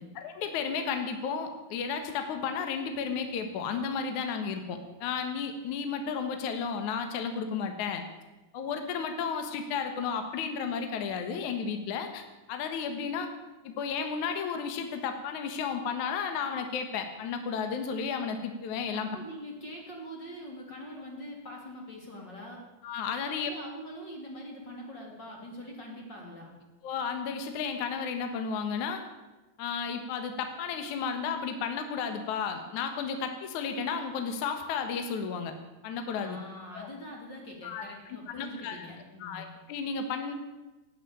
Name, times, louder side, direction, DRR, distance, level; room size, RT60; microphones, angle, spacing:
voice 1, 0.2-8.0 8.5-13.3 13.6-19.1 22.8-23.5 26.8-29.0 29.6-35.5 35.8-36.4 36.7-36.9 37.6-37.8 38.3-38.8 39.2-40.3, left 6 dB, 60° left, 6 dB, 2.5 m, -33 dB
voice 2, 18.9-22.6 23.2-26.5 36.1-39.4, equal, 30° left, 0 dB, 3.3 m, -43 dB
18.0 x 8.7 x 8.8 m, 1.1 s
omnidirectional pair, 4.4 m